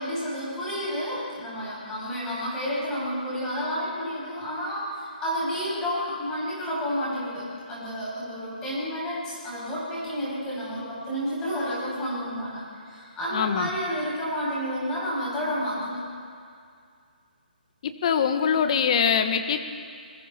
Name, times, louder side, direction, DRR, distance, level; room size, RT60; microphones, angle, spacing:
voice 1, 0.0-16.0, equal, 10° left, -8 dB, 7.9 m, -30 dB
voice 2, 13.3-13.7 17.8-19.6, left 7 dB, 35° left, 7 dB, 1.6 m, -23 dB
29.5 x 21.0 x 4.6 m, 2.2 s
hypercardioid pair, 165°, 5 cm